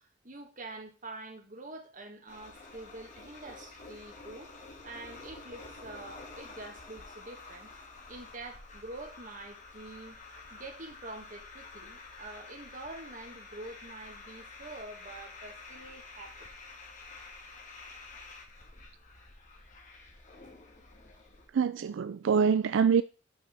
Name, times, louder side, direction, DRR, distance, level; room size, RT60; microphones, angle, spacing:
voice 1, 0.0-4.5 4.8-7.7 8.1-10.2 10.5-16.5, right 2 dB, 45° right, 1.6 m, -46 dB
sound 1, 2.3-21.5, left 3 dB, 40° left, 2.1 m, -49 dB
voice 2, 21.5-23.0, right 6 dB, 80° right, 0.4 m, -25 dB
6.1 x 5.4 x 5.8 m
head